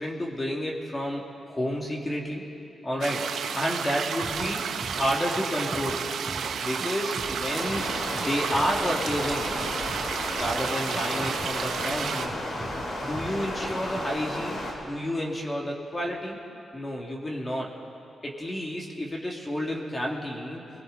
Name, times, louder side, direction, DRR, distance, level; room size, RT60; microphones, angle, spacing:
voice 1, 0.0-2.5 2.8-3.3 3.6-4.7 4.9-6.0 6.6-7.8 8.1-9.6 10.3-12.4 13.0-16.4 16.7-17.7 18.2-20.6, equal, 20° left, -2 dB, 2.4 m, -30 dB
sound 1, 3.0-12.3, right 7 dB, 85° right, 0.9 m, -32 dB
Scratching (performance technique), 4.2-4.5 4.8-5.9 6.2-7.3 7.7-8.8 9.1-10.1 10.4-11.5 11.7-12.3 12.6-12.8 13.1-14.0, right 2 dB, 10° right, 2.8 m, -39 dB
Stream, 7.4-14.7, left 1 dB, 70° left, 4.0 m, -33 dB
30.0 x 21.0 x 4.1 m, 2.7 s
cardioid pair, 110°, 0 cm